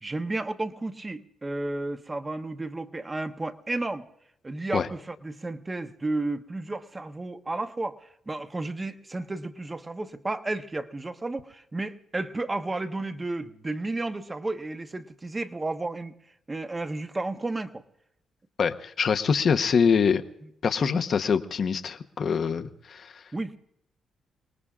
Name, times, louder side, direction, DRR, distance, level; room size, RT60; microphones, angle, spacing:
voice 1, 0.0-4.1 4.4-16.1 16.5-17.8 20.8-21.0 23.3-23.6, right 2 dB, 20° right, 8 dB, 1.0 m, -32 dB
voice 2, 18.6-20.2 20.6-23.2, left 6 dB, 50° left, 8 dB, 0.9 m, -24 dB
28.5 x 19.0 x 2.4 m, 0.78 s
cardioid pair, 90°, 0 cm